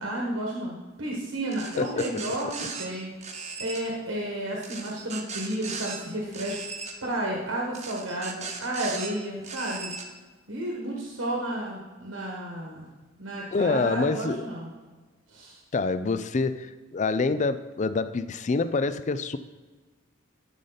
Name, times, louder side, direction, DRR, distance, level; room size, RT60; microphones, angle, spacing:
voice 1, 0.0-9.9 10.5-12.9 13.2-14.7 15.3-15.6, right 1 dB, 80° right, -2 dB, 1.4 m, -32 dB
sound 1, 1.5-2.9 3.2-3.8 4.6-6.0 6.3-6.9 7.7-9.1 9.4-10.0, right 5 dB, 35° right, 1.0 m, -37 dB
voice 2, 13.5-14.5 15.7-19.4, left 4 dB, 35° left, 12 dB, 0.4 m, -26 dB
12.5 x 5.1 x 4.0 m, 1.3 s
head